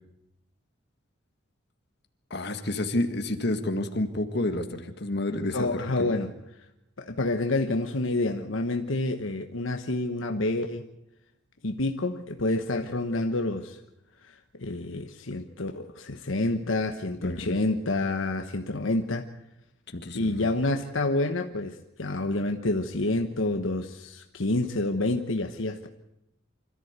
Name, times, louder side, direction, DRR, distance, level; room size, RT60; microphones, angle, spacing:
voice 1, 2.3-6.1 17.2-17.6 19.9-20.5, left 1 dB, 55° left, 6 dB, 1.9 m, -30 dB
voice 2, 5.5-6.3 7.0-10.9 11.6-13.8 14.6-19.3 20.1-25.8, left 2 dB, 80° left, 5 dB, 1.2 m, -28 dB
26.0 x 14.0 x 8.2 m, 0.87 s
head